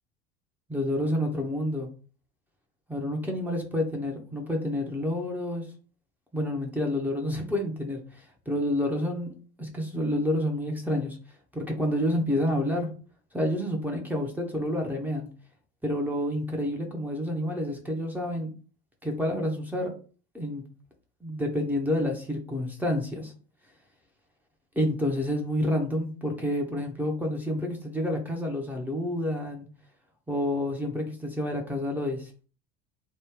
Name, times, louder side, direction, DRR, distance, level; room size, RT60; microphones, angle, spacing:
voice 1, 0.7-1.9 2.9-5.7 6.3-9.3 9.6-11.2 11.5-12.9 13.3-15.3 15.8-18.5 19.0-19.9 20.3-20.6 21.2-23.3 24.8-29.7 30.3-32.5, left 1 dB, 5° right, 0 dB, 0.8 m, -29 dB
3.1 x 2.2 x 3.7 m, 0.38 s
figure-of-eight pair, 70°, 31 cm